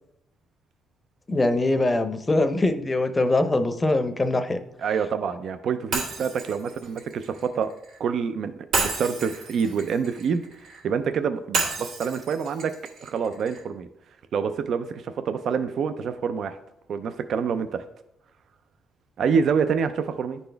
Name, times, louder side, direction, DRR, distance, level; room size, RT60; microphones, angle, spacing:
voice 1, 1.3-4.6, left 2 dB, 20° left, 8 dB, 0.6 m, -22 dB
voice 2, 4.8-7.7 8.0-10.4 10.8-12.7 13.0-13.9 14.3-16.6 16.9-17.8 19.2-20.4, right 6 dB, 60° right, 9 dB, 0.4 m, -27 dB
Shatter, 5.9-8.0 8.7-10.8 11.5-13.6, right 4 dB, 85° right, 1.8 m, -31 dB
10.0 x 4.1 x 3.4 m, 0.81 s
cardioid pair, 120°, 0 cm